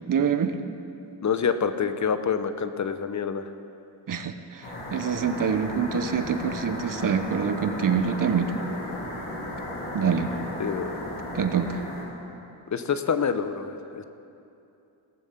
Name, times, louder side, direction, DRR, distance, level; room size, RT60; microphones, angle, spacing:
voice 1, 0.1-0.6 4.1-8.5 9.9-10.3 11.3-11.8, right 7 dB, 40° right, 9 dB, 1.0 m, -25 dB
voice 2, 1.2-3.5 10.6-11.1 12.7-14.0, left 6 dB, 35° left, 11 dB, 0.9 m, -27 dB
sound 1, 4.6-12.0, left 1 dB, 85° left, 3.6 m, -35 dB
18.0 x 7.2 x 5.8 m, 2.7 s
supercardioid pair, 65°, 49 cm